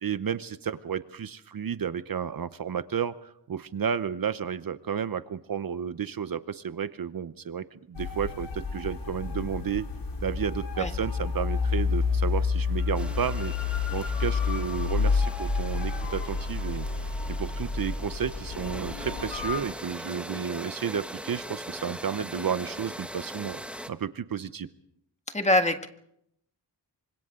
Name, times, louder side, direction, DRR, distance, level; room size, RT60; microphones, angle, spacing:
voice 1, 0.0-9.9 10.2-16.9 17.3-23.6 23.9-24.7, right 7 dB, 55° right, 13 dB, 0.9 m, -32 dB
sound 1, 7.9-19.6, left 4 dB, 80° left, 3.7 m, -29 dB
sound 2, 12.9-23.9, equal, 5° right, 1.1 m, -41 dB
voice 2, 25.3-25.9, left 1 dB, 15° left, 6 dB, 1.8 m, -23 dB
27.5 x 25.5 x 3.8 m, 0.75 s
wide cardioid pair, 90°, 42 cm